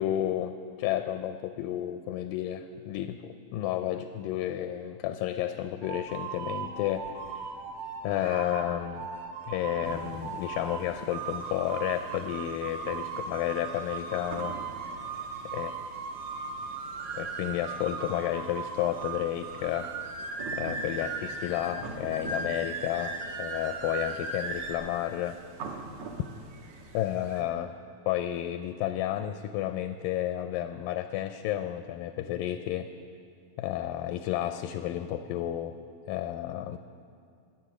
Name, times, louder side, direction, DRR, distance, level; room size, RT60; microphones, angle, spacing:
voice 1, 0.0-7.5 8.0-9.1 9.5-15.0 15.5-15.7 17.1-19.9 20.5-25.4 26.9-27.7 28.1-32.9 33.6-35.8 36.1-36.8, left 12 dB, 80° left, 9 dB, 2.0 m, -31 dB
sound 1, 5.8-24.7, right 4 dB, 90° right, 1.3 m, -37 dB
sound 2, 9.8-27.4, right 3 dB, 65° right, 2.0 m, -46 dB
20.0 x 7.4 x 6.0 m, 2.4 s
omnidirectional pair, 4.2 m